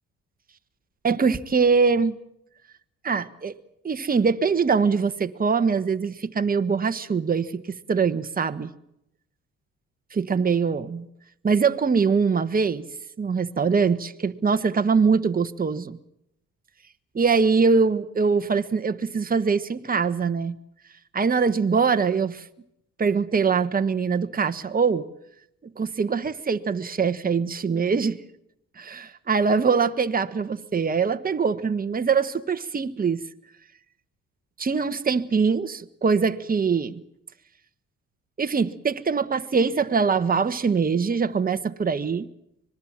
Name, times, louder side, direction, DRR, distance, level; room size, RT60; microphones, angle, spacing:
voice 1, 1.0-2.2 3.0-3.6 3.8-8.7 10.1-11.1 11.4-12.8 13.2-16.0 17.1-20.6 21.1-22.4 23.0-25.1 25.8-28.2 28.8-33.2 34.6-37.0 38.4-42.3, right 5 dB, 30° right, 1.4 m, -23 dB
25.5 x 20.5 x 7.5 m
cardioid pair, 90°, 30 cm